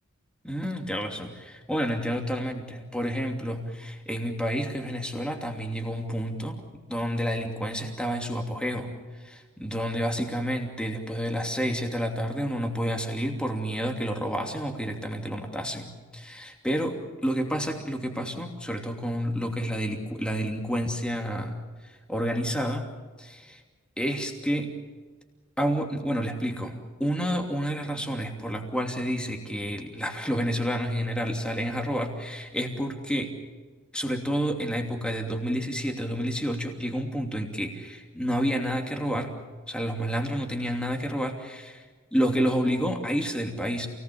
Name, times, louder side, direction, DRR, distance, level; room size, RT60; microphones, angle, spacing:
voice 1, 0.4-6.6 6.9-8.9 9.2-21.6 22.1-23.6 24.0-24.7 25.6-33.3 33.9-39.4 39.7-41.8 42.1-43.9, equal, 5° left, 3 dB, 2.8 m, -29 dB
28.5 x 19.0 x 7.1 m, 1.4 s
head